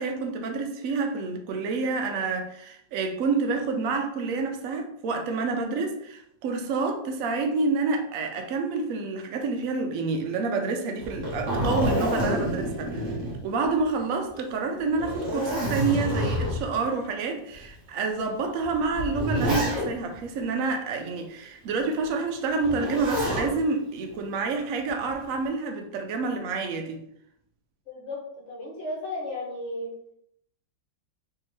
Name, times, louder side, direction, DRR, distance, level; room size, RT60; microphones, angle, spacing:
voice 1, 0.0-13.2 13.4-27.0, right 4 dB, 80° right, 0.7 m, -28 dB
Zipper (clothing), 11.0-13.9 14.3-14.4 14.9-16.8 17.5-17.6 18.6-20.2 22.6-23.5 24.9-25.4, equal, 40° right, 0.9 m, -28 dB
voice 2, 27.9-30.0, left 1 dB, 50° left, 1.0 m, -34 dB
3.4 x 2.8 x 3.0 m
omnidirectional pair, 2.0 m